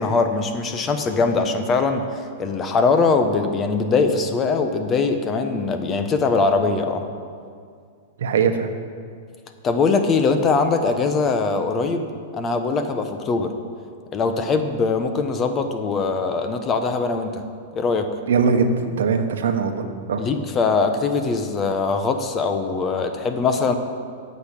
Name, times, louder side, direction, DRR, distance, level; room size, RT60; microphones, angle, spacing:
voice 1, 0.0-7.0 9.6-12.0 12.3-13.5 14.1-17.4 17.8-18.1 20.2-23.8, left 4 dB, 25° left, 7 dB, 1.0 m, -21 dB
voice 2, 8.2-8.7 18.3-18.7 19.0-20.2, right 6 dB, 85° right, 7 dB, 1.1 m, -21 dB
9.3 x 6.5 x 8.4 m, 2.2 s
hypercardioid pair, 135°, 0 cm